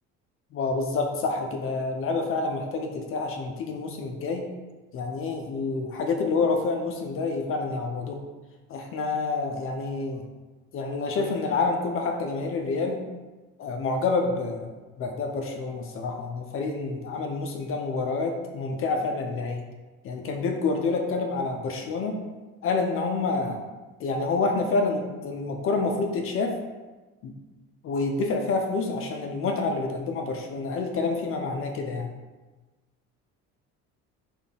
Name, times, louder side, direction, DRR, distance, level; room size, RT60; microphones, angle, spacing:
voice 1, 0.5-4.5 4.9-8.2 8.7-10.3 10.7-13.0 13.6-14.7 15.0-19.6 20.0-22.2 22.6-23.6 24.0-26.5 27.2-27.3 27.8-32.1, left 3 dB, 45° left, 3 dB, 0.4 m, -28 dB
3.6 x 2.3 x 3.8 m, 1.2 s
cardioid pair, 115°, 30 cm